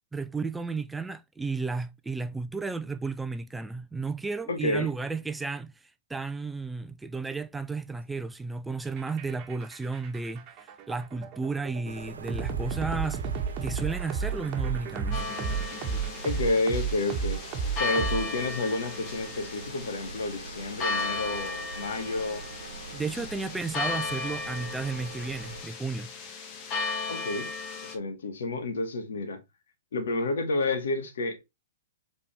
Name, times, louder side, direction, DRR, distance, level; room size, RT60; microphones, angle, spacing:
voice 1, 0.1-5.7 6.1-13.3 13.6-15.2 22.9-26.1, right 4 dB, 5° right, 0.5 m, -33 dB
voice 2, 4.5-4.9 16.2-17.4 17.8-22.5 27.1-27.5 27.8-29.4 29.9-31.4, left 2 dB, 70° left, 2.0 m, -30 dB
sound 1, 8.9-18.6, right 6 dB, 30° right, 1.9 m, -32 dB
sound 2, 11.9-25.6, right 4 dB, 85° right, 1.0 m, -44 dB
sound 3, 15.1-27.9, left 3 dB, 30° left, 1.8 m, -35 dB
7.5 x 4.2 x 3.4 m
hypercardioid pair, 125°, 0 cm